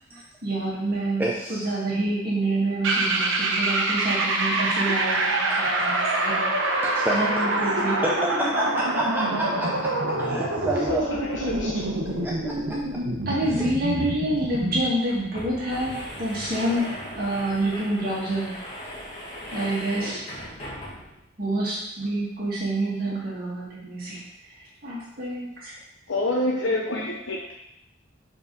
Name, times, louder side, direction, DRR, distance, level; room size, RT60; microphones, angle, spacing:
voice 1, 0.4-1.2 1.5-6.5 7.1-8.0 13.3-18.5 19.5-20.2 21.4-24.2 24.8-25.7, right 1 dB, 45° right, -6 dB, 1.6 m, -27 dB
voice 2, 1.2-1.7 5.5-5.6 6.8-7.3 7.7-11.1 11.8-12.8 13.5-13.7, right 1 dB, 10° right, -3 dB, 0.5 m, -30 dB
sound 1, 2.8-14.9, right 2 dB, 75° right, 0.9 m, -26 dB
voice 3, 10.9-11.8 20.1-20.2 26.1-27.5, left 2 dB, 70° left, -2 dB, 0.7 m, -27 dB
sound 2, 14.8-21.3, equal, 30° left, 1.6 m, -38 dB
4.8 x 3.8 x 5.3 m, 0.81 s
head